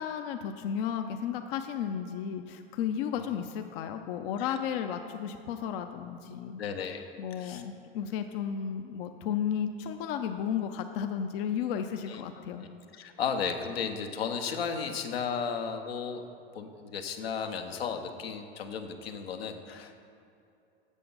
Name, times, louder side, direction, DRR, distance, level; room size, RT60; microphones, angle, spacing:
voice 1, 0.0-6.6 7.2-12.7, left 8 dB, 65° left, 6 dB, 0.6 m, -33 dB
voice 2, 6.6-7.1 7.4-7.6 12.1-12.2 12.5-12.7 12.9-16.2 16.5-20.0, left 6 dB, 90° left, 5 dB, 0.9 m, -34 dB
8.3 x 6.9 x 5.4 m, 2.7 s
hypercardioid pair, 100°, 30 cm